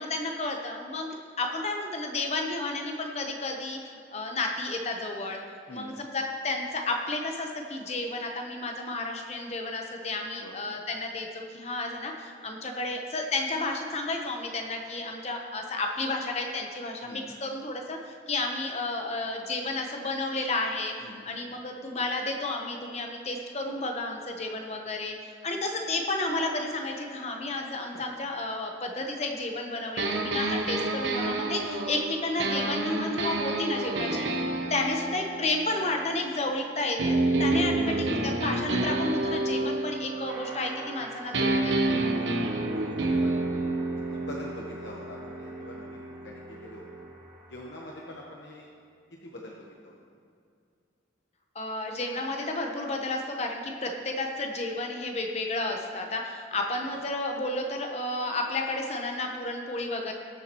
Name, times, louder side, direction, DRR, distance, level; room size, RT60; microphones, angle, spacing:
voice 1, 0.0-5.4 5.7-20.9 21.2-25.1 25.4-34.3 34.7-41.8 51.5-60.1, left 2 dB, 35° left, 2 dB, 0.9 m, -32 dB
voice 2, 17.0-17.3 21.0-21.3 27.9-28.0 42.2-42.4 43.0-43.3 44.0-46.9 47.5-48.7 49.2-49.9, left 1 dB, 70° left, -2 dB, 1.1 m, -44 dB
sound 1, 30.0-36.5 37.0-41.0 41.3-47.1, right 2 dB, 80° right, 1.0 m, -29 dB
sound 2, 40.3-48.1, right 1 dB, 20° right, 1.3 m, -48 dB
19.5 x 7.1 x 3.0 m, 2.4 s
head